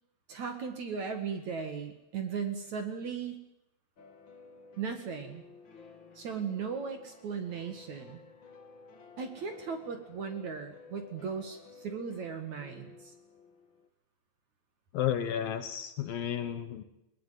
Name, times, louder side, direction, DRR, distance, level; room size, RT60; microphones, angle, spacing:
voice 1, 0.3-3.4 4.8-5.4 6.2-8.2 9.2-13.1, right 6 dB, 50° right, 7 dB, 2.6 m, -37 dB
sound 1, 4.0-13.9, left 4 dB, 45° left, 1.6 m, -54 dB
voice 2, 14.9-16.8, left 10 dB, 65° left, 10 dB, 2.6 m, -32 dB
21.0 x 21.0 x 9.5 m, 0.87 s
omnidirectional pair, 5.1 m